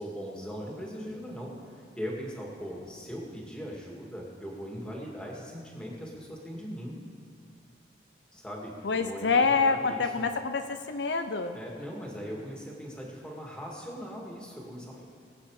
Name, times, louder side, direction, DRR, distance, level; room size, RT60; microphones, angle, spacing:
voice 1, 0.0-7.0 8.3-10.3 11.5-15.1, equal, 5° left, -3 dB, 2.2 m, -40 dB
voice 2, 8.8-11.6, left 4 dB, 70° left, 7 dB, 0.6 m, -26 dB
21.5 x 8.4 x 4.9 m, 2.2 s
head